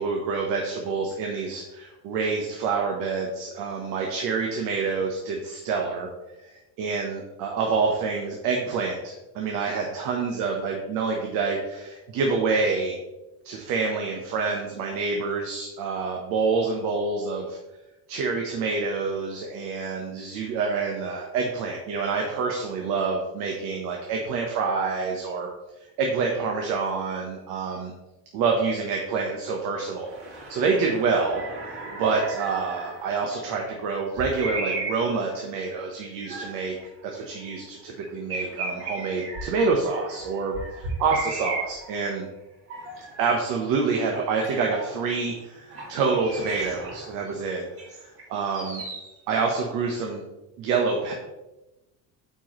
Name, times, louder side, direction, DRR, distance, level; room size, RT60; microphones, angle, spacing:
voice 1, 0.0-6.1 6.4-13.0 13.4-17.6 18.1-25.5 26.0-27.9 28.3-31.4 31.7-36.8 37.0-42.3 43.2-47.6 48.3-48.8 49.3-50.2 50.6-51.1, right 4 dB, 60° right, 1 dB, 1.1 m, -27 dB
sound 1, 30.0-33.4 33.9-35.3 35.8-36.7 37.0-37.1 37.6-37.7 38.0-42.1 42.7-43.6 43.9-44.1 44.4-45.3 45.7-45.9 46.2-48.2 48.5-49.1, right 3 dB, 40° right, 2.5 m, -36 dB
9.0 x 4.7 x 3.1 m, 1.0 s
cardioid pair, 175°, 37 cm